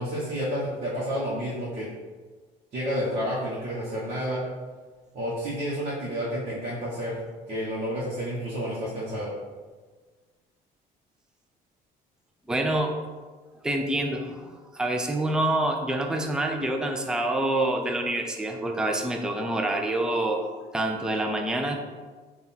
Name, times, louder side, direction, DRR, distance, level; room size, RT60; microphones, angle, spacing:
voice 1, 0.0-1.9 2.7-4.4 5.1-7.2 7.5-9.3, equal, 40° right, -8 dB, 0.9 m, -30 dB
voice 2, 12.5-12.9 13.6-20.5 20.7-21.8, right 1 dB, 5° right, 3 dB, 0.4 m, -27 dB
3.6 x 2.3 x 4.0 m, 1.4 s
cardioid pair, 110°, 17 cm